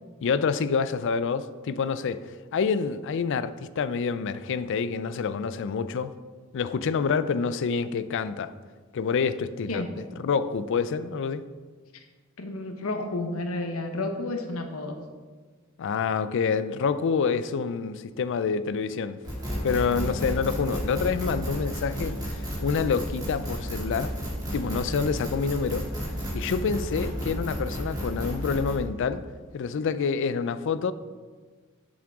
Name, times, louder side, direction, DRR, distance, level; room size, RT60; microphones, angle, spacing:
voice 1, 0.2-2.2 2.5-6.1 6.5-8.5 8.9-9.8 10.2-11.4 15.8-19.2 19.6-24.1 24.5-25.9 26.3-29.3 29.5-30.9, left 5 dB, 60° left, 0.4 m, -27 dB
voice 2, 12.4-15.0, left 2 dB, 75° left, 1.0 m, -31 dB
sound 1, 19.2-28.7, equal, 20° right, 2.4 m, -32 dB
7.5 x 7.4 x 3.6 m
head